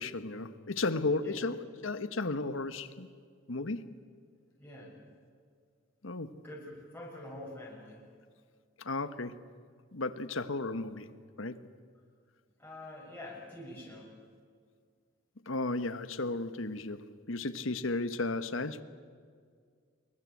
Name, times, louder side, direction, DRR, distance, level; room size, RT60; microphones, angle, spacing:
voice 1, 0.0-3.1 3.5-3.9 6.0-6.4 8.8-9.4 9.9-11.1 11.4-11.6 15.5-18.8, left 3 dB, 75° left, 1.3 m, -34 dB
voice 2, 4.6-5.0 6.4-8.0 12.6-14.1, left 1 dB, 10° left, 6.9 m, -46 dB
25.5 x 22.0 x 8.5 m
head